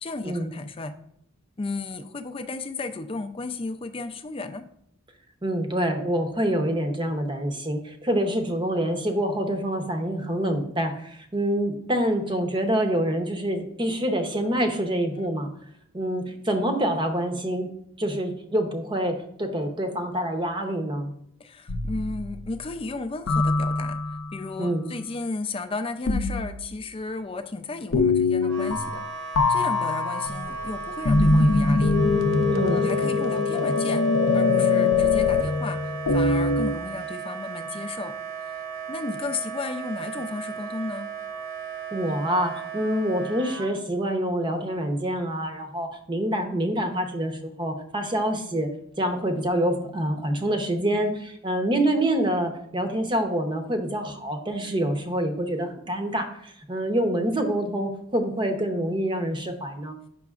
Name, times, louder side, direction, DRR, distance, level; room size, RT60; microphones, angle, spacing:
voice 1, 0.0-1.0 1.6-4.7 15.1-15.3 21.4-29.0 29.5-32.0 32.5-34.1 34.3-38.1 38.5-38.6 38.9-41.1, left 3 dB, 25° left, 8 dB, 0.4 m, -34 dB
voice 2, 5.4-15.5 15.9-17.7 18.0-21.1 24.6-24.9 32.5-32.9 41.9-48.7 49.0-60.0, right 1 dB, 25° right, 5 dB, 0.7 m, -26 dB
sound 1, 21.7-22.5 23.3-24.3 26.1-26.6 27.9-29.1 29.4-36.7, left 3 dB, 75° left, 0.5 m, -23 dB
Wind instrument woodwind instrument, 28.4-43.7, right 5 dB, 80° right, 1.2 m, -36 dB
8.4 x 5.9 x 2.4 m, 0.70 s
head